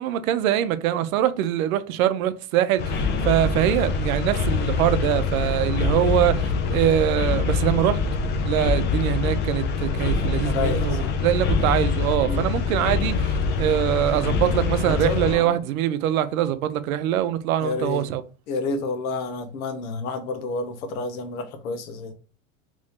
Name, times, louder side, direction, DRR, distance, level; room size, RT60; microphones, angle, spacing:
voice 1, 0.0-8.0 8.4-11.0 11.2-18.2, right 11 dB, 85° right, 0.6 m, -23 dB
sound 1, 2.8-15.4, left 4 dB, 30° left, 0.4 m, -24 dB
voice 2, 10.4-11.2 12.2-12.4 14.9-15.6 17.6-18.1 18.5-22.1, left 3 dB, 85° left, 0.9 m, -30 dB
3.1 x 2.6 x 3.5 m
supercardioid pair, 130°, 40 cm